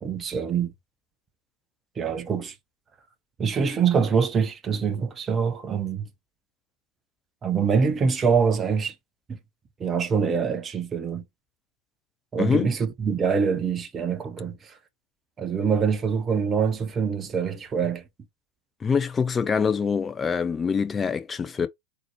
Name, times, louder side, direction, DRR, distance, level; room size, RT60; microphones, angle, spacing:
voice 1, 0.0-0.7 2.0-2.5 3.4-6.1 7.4-8.9 9.3-9.4 9.8-11.2 12.3-14.7 15.4-18.0, right 6 dB, 20° right, 0.8 m, -24 dB
voice 2, 12.4-12.7 18.8-21.7, left 6 dB, 20° left, 0.6 m, -24 dB
3.9 x 3.0 x 2.9 m
figure-of-eight pair, 90°, 0 cm